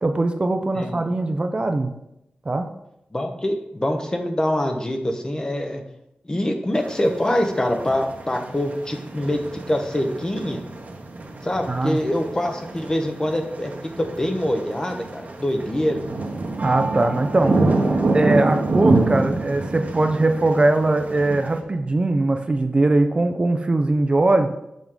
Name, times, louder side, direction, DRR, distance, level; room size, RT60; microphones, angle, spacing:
voice 1, 0.0-1.9 2.5-2.7 11.7-12.0 16.6-17.6 18.1-24.5, right 2 dB, 35° right, 6 dB, 0.5 m, -21 dB
voice 2, 0.7-1.1 3.1-5.8 6.2-10.6 11.4-13.7 14.0-16.0, left 1 dB, 25° left, 5 dB, 0.9 m, -24 dB
sound 1, 6.7-21.6, right 2 dB, 55° right, 1.0 m, -26 dB
7.2 x 4.7 x 3.8 m, 0.82 s
wide cardioid pair, 85°, 3 cm